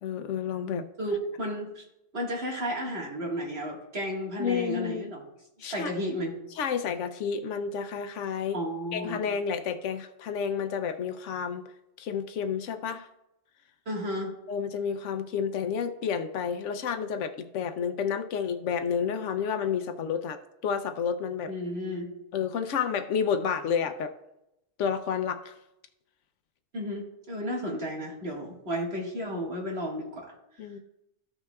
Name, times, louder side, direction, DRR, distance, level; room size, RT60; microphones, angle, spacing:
voice 1, 0.0-0.9 4.4-5.1 5.6-5.9 6.6-8.6 8.9-11.6 12.0-13.1 14.5-21.5 22.3-24.1 24.8-25.5 30.6-30.8, left 7 dB, 90° left, 8 dB, 1.0 m, -30 dB
voice 2, 1.0-1.8 2.1-5.2 5.6-6.3 8.5-9.2 13.9-14.3 21.5-22.1 26.7-30.3, equal, 55° right, -2 dB, 2.0 m, -33 dB
14.5 x 5.9 x 2.3 m, 0.86 s
omnidirectional pair, 1.2 m